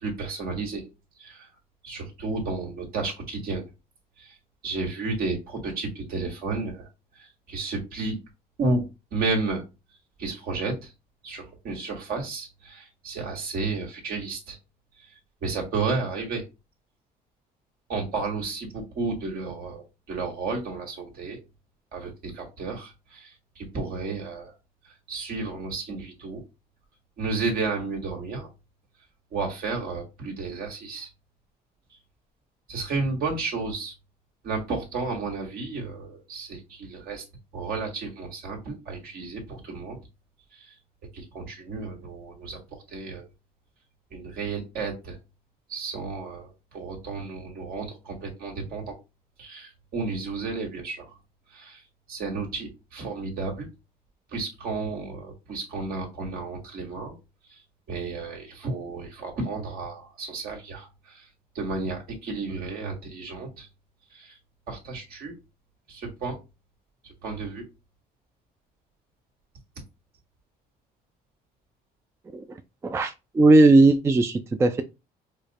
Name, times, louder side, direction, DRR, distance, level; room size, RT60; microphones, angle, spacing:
voice 1, 0.0-0.8 1.2-1.5 1.8-3.6 4.2-4.3 4.6-6.9 7.1-8.2 8.6-8.8 9.1-9.6 10.2-10.9 11.2-14.6 15.4-16.4 17.9-21.4 21.9-24.5 25.1-26.4 27.2-28.5 29.3-31.1 32.7-33.9 34.4-37.2 37.5-40.0 40.5-40.7 41.1-43.3 44.1-45.2 45.7-48.9 49.4-51.1 51.5-51.8 52.1-53.7 54.3-57.1 57.5-57.6 57.9-61.3 61.5-63.7 64.1-64.4 64.7-65.3 65.9-66.4 67.2-67.6, right 3 dB, 65° right, 1.6 m, -32 dB
voice 2, 72.8-74.8, right 2 dB, 15° right, 0.3 m, -18 dB
4.6 x 2.1 x 2.8 m
cardioid pair, 110°, 17 cm